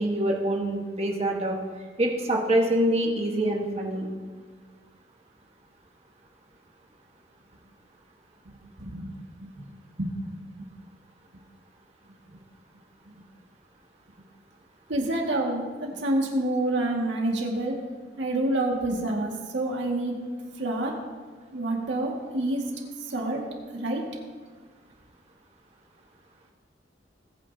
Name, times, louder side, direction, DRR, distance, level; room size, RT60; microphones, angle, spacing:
voice 1, 0.0-1.6 2.0-4.1, right 1 dB, 35° right, 0 dB, 1.5 m, -25 dB
voice 2, 14.9-17.8 18.2-20.2 20.6-20.9 21.5-22.6 23.1-23.4 23.8-24.0, right 1 dB, 85° right, 0 dB, 2.1 m, -27 dB
21.0 x 9.1 x 2.9 m, 1.5 s
head